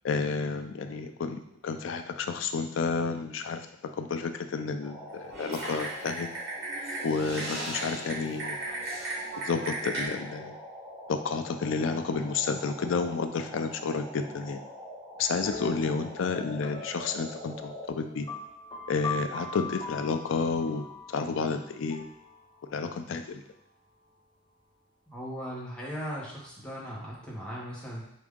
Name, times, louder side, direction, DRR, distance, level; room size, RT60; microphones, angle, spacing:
voice 1, 0.0-3.6 3.9-6.3 7.0-8.6 9.4-10.6 11.1-14.6 15.2-18.3 18.9-22.1 22.7-23.4, left 4 dB, 75° left, 7 dB, 0.4 m, -31 dB
sound 1, 4.8-17.9, equal, 15° right, 1.0 m, -45 dB
Typing, 5.3-10.1, right 2 dB, 55° right, 1.5 m, -36 dB
sound 2, 15.4-23.0, left 3 dB, 25° left, 0.5 m, -41 dB
voice 2, 25.1-28.1, equal, 5° left, -6 dB, 1.2 m, -38 dB
4.9 x 2.7 x 3.6 m, 0.82 s
head